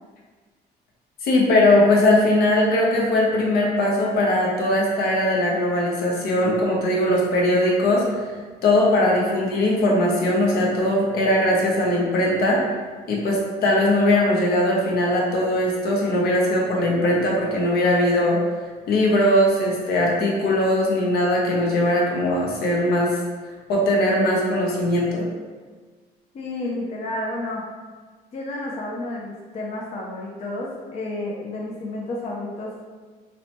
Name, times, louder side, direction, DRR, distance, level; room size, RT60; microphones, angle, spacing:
voice 1, 1.2-8.3 8.6-12.6 13.1-18.4 18.9-23.2 23.7-25.3, left 1 dB, 70° left, -2 dB, 0.7 m, -20 dB
voice 2, 26.3-27.7 28.3-32.8, left 2 dB, 40° left, -3 dB, 0.4 m, -31 dB
3.0 x 2.1 x 2.9 m, 1.4 s
cardioid pair, 110°, 17 cm